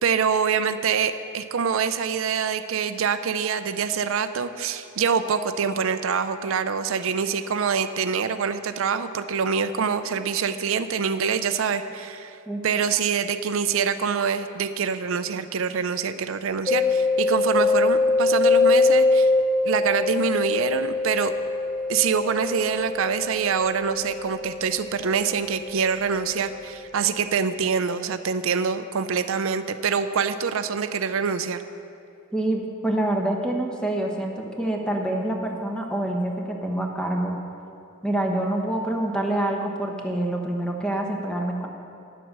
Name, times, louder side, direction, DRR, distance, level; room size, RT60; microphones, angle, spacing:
voice 1, 0.0-12.4 12.6-19.3 19.6-21.3 21.9-31.6, right 6 dB, 75° right, 11 dB, 0.5 m, -25 dB
Mallet percussion, 16.7-26.2, left 3 dB, 20° left, 0.5 m, -23 dB
voice 2, 32.3-37.4 38.0-41.7, right 1 dB, 5° left, 1 dB, 1.0 m, -26 dB
10.0 x 7.7 x 6.6 m, 2.5 s
head